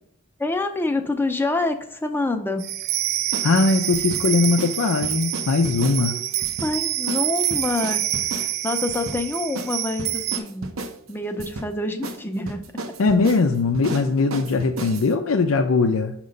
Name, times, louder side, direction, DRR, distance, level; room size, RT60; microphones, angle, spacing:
voice 1, 0.4-2.8 6.1-6.3 6.6-8.0 8.4-10.7 11.1-12.6, left 2 dB, 10° left, 6 dB, 0.5 m, -26 dB
sound 1, 2.6-10.4, right 13 dB, 50° right, 0.3 m, -27 dB
sound 2, 3.3-3.5 3.9-4.2 4.6-4.8 5.0-6.0 6.4-6.7 7.1-7.2 7.5-8.5 8.9-9.2 9.6-9.7 10.0-11.0 11.4-11.7 12.0-12.2 12.5-15.1, right 2 dB, 85° right, 0.7 m, -33 dB
voice 2, 3.4-6.2 13.0-16.1, left 4 dB, 90° left, 5 dB, 0.5 m, -20 dB
6.5 x 2.9 x 5.2 m, 0.74 s
head